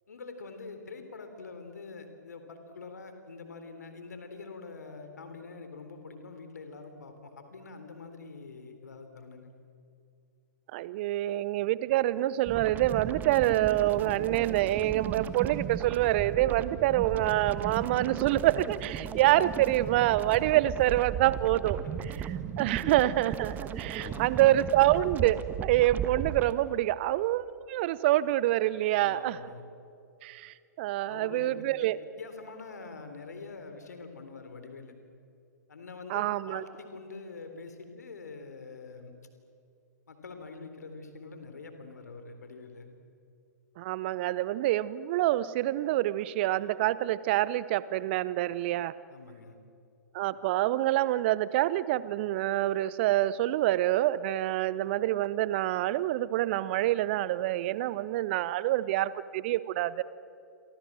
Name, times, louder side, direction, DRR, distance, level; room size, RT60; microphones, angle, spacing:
voice 1, 0.1-9.5 22.6-22.9 23.9-24.5 28.9-29.7 31.1-31.9 32.2-34.9 35.7-39.1 40.1-42.9 49.1-49.6, left 4 dB, 65° left, 7 dB, 4.0 m, -45 dB
voice 2, 10.7-21.8 22.2-29.4 30.2-32.0 36.1-36.6 43.8-48.9 50.1-60.0, right 15 dB, 35° right, 18 dB, 0.8 m, -26 dB
sound 1, 12.5-26.5, right 8 dB, 20° right, 1.2 m, -36 dB
29.0 x 24.5 x 7.6 m, 2.5 s
figure-of-eight pair, 115°, 10 cm